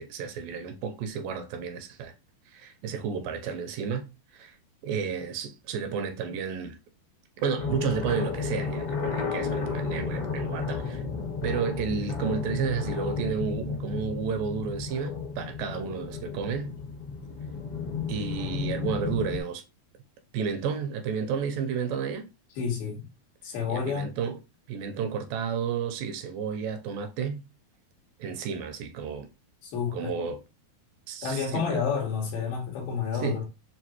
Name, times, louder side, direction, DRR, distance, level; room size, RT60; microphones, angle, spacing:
voice 1, 0.0-2.1 2.5-4.1 4.3-4.6 4.8-6.8 7.4-11.0 11.4-16.7 18.1-19.6 20.3-22.3 23.7-24.4 24.7-27.4 28.2-29.3 29.9-30.4 31.1-31.8 33.2-33.4, right 6 dB, 85° right, 2.3 m, -32 dB
sound 1, 7.6-19.4, left 5 dB, 60° left, 1.6 m, -32 dB
voice 2, 22.6-23.1 23.4-24.1 29.6-30.1 31.2-33.5, left 6 dB, 85° left, 3.5 m, -30 dB
6.9 x 2.5 x 2.9 m
omnidirectional pair, 4.1 m